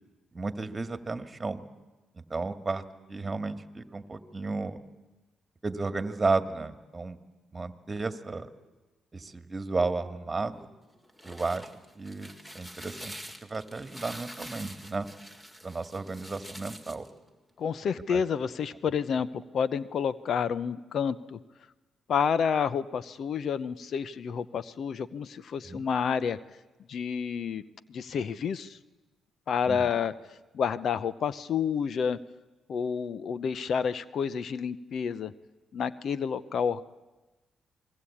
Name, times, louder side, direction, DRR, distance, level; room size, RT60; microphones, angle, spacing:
voice 1, 0.3-1.6 2.1-2.8 3.1-4.8 5.6-7.2 7.5-8.5 9.1-10.7 11.2-11.7 12.0-15.1 15.6-17.1 18.1-18.2 25.7-25.8 29.7-29.9, right 3 dB, 30° right, 10 dB, 2.1 m, -33 dB
sound 1, 10.9-17.1, equal, 10° left, 2.6 m, -46 dB
voice 2, 17.6-19.3 19.5-21.4 22.1-26.4 26.9-27.6 27.9-28.8 29.5-30.1 30.5-32.2 32.7-35.3 35.7-36.8, left 7 dB, 65° left, 18 dB, 0.8 m, -29 dB
28.5 x 21.5 x 8.7 m, 1.1 s
supercardioid pair, 60°, 0 cm